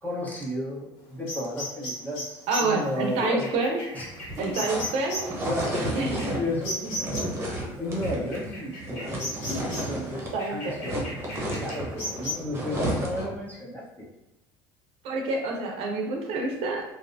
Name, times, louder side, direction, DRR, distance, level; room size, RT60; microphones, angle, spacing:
voice 1, 0.0-3.5 3.9-4.1 4.4-5.1 5.4-6.8 7.0-7.2 7.8-9.5 9.8-14.1, left 1 dB, 15° left, -4 dB, 1.1 m, -33 dB
sound 1, 1.3-7.4 8.0-10.0 10.4-12.3, left 1 dB, 75° left, 1.4 m, -36 dB
voice 2, 2.5-3.8 4.4-5.3 5.9-6.2 10.3-10.9 15.0-16.8, right 3 dB, 65° right, 2 dB, 0.7 m, -28 dB
sound 2, 4.1-10.4 10.6-13.4, right 1 dB, 20° right, 1.1 m, -32 dB
3.2 x 2.7 x 2.6 m, 1.0 s
supercardioid pair, 90°, 11 cm